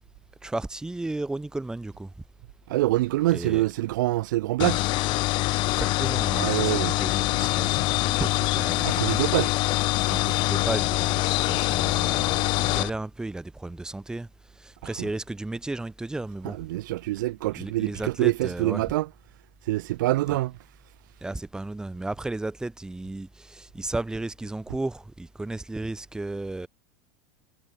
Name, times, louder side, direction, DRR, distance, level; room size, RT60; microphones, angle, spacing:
voice 1, 0.4-2.1 3.3-3.7 5.6-9.0 10.1-14.3 14.6-16.6 17.5-18.8 20.3-20.4 21.2-26.7, right 2 dB, 5° right, 1.7 m, -34 dB
voice 2, 2.7-4.8 6.3-7.0 8.8-9.5 15.0-15.1 16.6-19.1 19.7-20.5, right 17 dB, 80° right, 0.6 m, -25 dB
sound 1, 4.6-12.9, left 21 dB, 50° left, 0.8 m, -24 dB
supercardioid pair, 120°, 10 cm